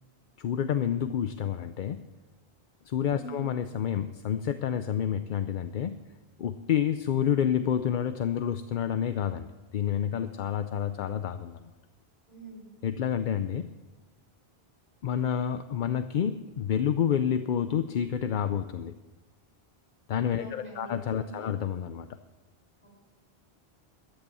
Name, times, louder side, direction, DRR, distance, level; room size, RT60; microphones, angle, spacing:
voice 1, 0.4-2.0 2.9-6.0 6.4-11.6 12.8-13.7 15.0-18.9 20.1-22.1, left 9 dB, 55° left, 10 dB, 0.6 m, -29 dB
voice 2, 12.3-12.7 20.4-21.5 22.8-22.9, right 2 dB, 30° left, -3 dB, 5.8 m, -45 dB
13.5 x 10.0 x 6.9 m, 1.2 s
omnidirectional pair, 1.0 m